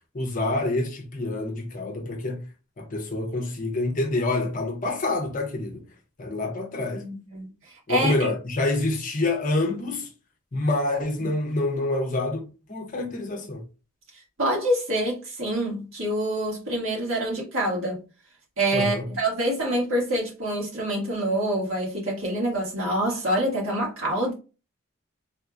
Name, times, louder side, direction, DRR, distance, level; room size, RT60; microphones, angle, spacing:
voice 1, 0.1-2.4 2.8-5.8 6.2-7.1 7.9-10.1 10.5-12.4 12.7-13.6 18.7-19.1, left 2 dB, 40° left, 0.7 m, -27 dB
voice 2, 7.0-7.5 7.9-8.3 14.4-18.0 18.6-24.3, right 1 dB, 70° right, 1.7 m, -26 dB
3.4 x 2.9 x 2.4 m
head